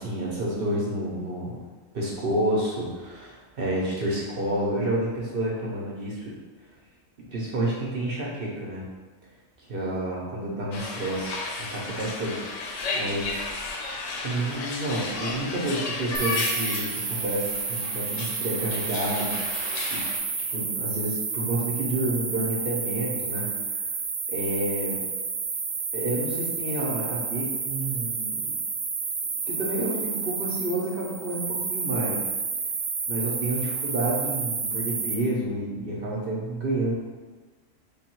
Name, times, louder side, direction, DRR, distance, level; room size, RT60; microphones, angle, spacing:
voice 1, 0.0-1.6 1.9-6.3 7.3-8.8 9.6-13.4 14.2-19.4 19.9-20.0 20.5-23.8 24.3-25.0 25.9-28.5 29.5-32.2 33.1-36.9, right 1 dB, 50° right, -4 dB, 0.9 m, -29 dB
sound 1, 10.7-20.2, left 3 dB, 75° left, 0.9 m, -33 dB
sound 2, 16.1-35.1, right 5 dB, 80° right, 1.0 m, -30 dB
3.5 x 2.3 x 4.4 m, 1.3 s
omnidirectional pair, 1.3 m